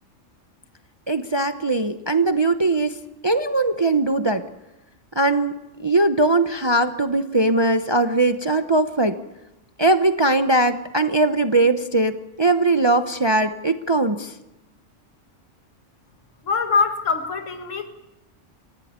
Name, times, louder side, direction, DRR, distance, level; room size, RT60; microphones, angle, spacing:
voice 1, 1.1-3.0 3.2-4.4 5.2-9.2 9.8-14.3, right 2 dB, 25° right, 8 dB, 0.9 m, -20 dB
voice 2, 16.4-17.9, left 5 dB, 85° left, 7 dB, 1.9 m, -23 dB
28.5 x 15.0 x 9.5 m, 0.96 s
omnidirectional pair, 1.3 m